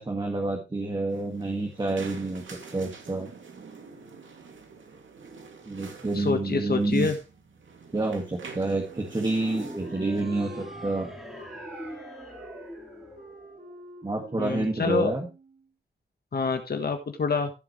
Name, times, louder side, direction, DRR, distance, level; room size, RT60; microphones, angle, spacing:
voice 1, 0.0-3.3 5.7-7.1 7.9-11.1 14.0-15.3, right 2 dB, 25° right, 1 dB, 1.8 m, -28 dB
sound 1, 1.1-10.2, right 4 dB, 80° right, 2.5 m, -47 dB
voice 2, 6.1-7.2 14.4-15.1 16.3-17.5, left 5 dB, 55° left, 6 dB, 1.3 m, -27 dB
Wind instrument woodwind instrument, 8.9-15.7, right 2 dB, 50° right, 4.9 m, -46 dB
sound 2, 9.4-13.9, equal, ahead, 3.4 m, -43 dB
15.5 x 7.6 x 3.2 m, 0.28 s
wide cardioid pair, 165°, 19 cm